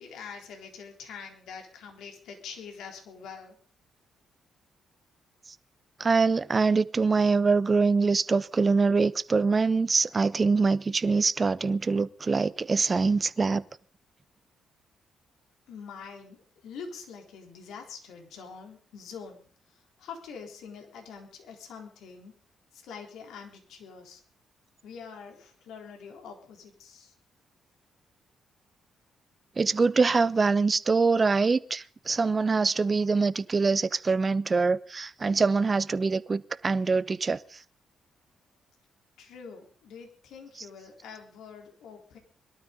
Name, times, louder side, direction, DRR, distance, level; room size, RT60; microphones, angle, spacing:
voice 1, 0.0-3.6 15.7-19.4 19.7-22.3 22.7-24.2 24.8-27.1 39.2-42.2, left 6 dB, 75° left, 3.8 m, -45 dB
voice 2, 6.0-13.6 29.6-37.4, right 4 dB, 40° right, 0.9 m, -24 dB
22.0 x 12.5 x 3.9 m
hypercardioid pair, 45°, 0 cm